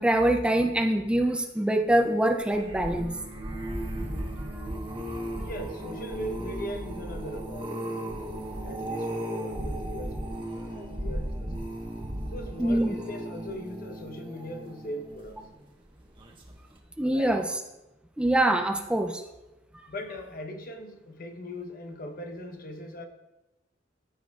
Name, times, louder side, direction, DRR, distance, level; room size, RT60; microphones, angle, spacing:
voice 1, 0.0-3.1 12.6-12.9 17.0-17.4 18.2-19.2, right 1 dB, 5° right, 4 dB, 0.4 m, -24 dB
sound 1, 2.3-15.6 16.2-16.5 16.8-16.9, right 1 dB, 30° right, 1.2 m, -36 dB
voice 2, 5.4-8.2 8.6-11.7 12.3-15.4 17.0-17.5 19.9-23.1, equal, 55° left, 5 dB, 0.9 m, -40 dB
14.0 x 6.2 x 2.4 m, 1.0 s
head